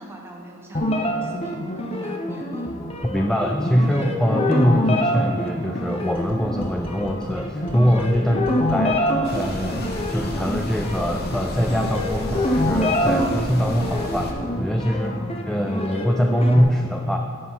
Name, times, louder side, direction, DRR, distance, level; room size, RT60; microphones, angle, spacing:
voice 1, 0.0-2.7 8.2-8.4 15.0-15.2, right 1 dB, 15° right, -1 dB, 1.2 m, -41 dB
sound 1, 0.7-16.6, left 1 dB, 30° left, 0.7 m, -26 dB
voice 2, 3.1-8.4 8.7-15.1 15.5-17.2, equal, 5° left, 2 dB, 0.3 m, -23 dB
sound 2, 6.2-13.5, equal, 75° right, 2.0 m, -41 dB
sound 3, 9.2-14.3, left 1 dB, 55° left, 0.9 m, -32 dB
9.4 x 5.7 x 5.6 m, 2.2 s
head